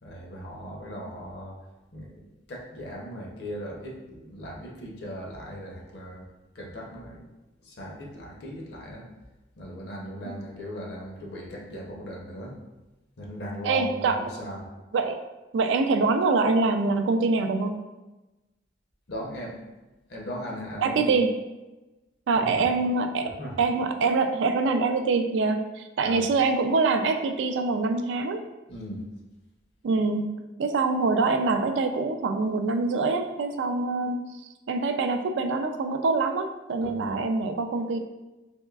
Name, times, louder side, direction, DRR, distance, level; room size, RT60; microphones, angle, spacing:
voice 1, 0.0-1.6 1.9-6.2 6.5-7.2 7.6-9.1 9.6-12.6 13.2-14.7 19.1-19.6 20.1-21.2 22.3-22.6 23.2-23.6 26.0-26.2 28.7-29.0 36.8-37.1, equal, 65° left, -1 dB, 0.7 m, -38 dB
voice 2, 13.6-14.2 14.9-15.2 15.5-17.8 20.8-21.3 22.3-23.3 23.6-28.4 29.8-30.3 30.6-34.2 34.7-38.0, right 3 dB, 80° right, 7 dB, 0.3 m, -24 dB
3.5 x 3.0 x 2.3 m, 1.1 s
head